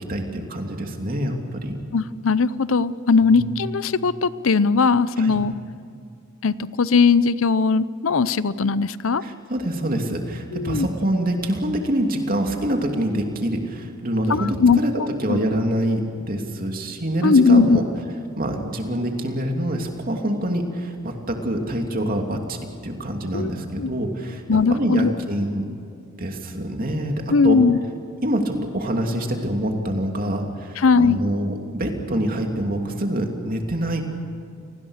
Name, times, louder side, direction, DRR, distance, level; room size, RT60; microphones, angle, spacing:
voice 1, 0.0-1.7 3.2-3.4 5.2-5.4 9.2-14.9 15.2-17.8 18.4-24.4 24.7-25.7 26.2-27.6 28.2-34.0, right 1 dB, 45° right, 3 dB, 2.9 m, -25 dB
voice 2, 1.9-5.5 6.4-9.2 10.5-10.9 14.3-14.8 15.3-15.4 17.2-17.8 23.3-23.5 23.8-23.9 24.5-25.1 27.3-27.8 30.8-31.2, left 4 dB, 75° left, 16 dB, 0.6 m, -19 dB
29.0 x 19.5 x 6.6 m, 2.5 s
head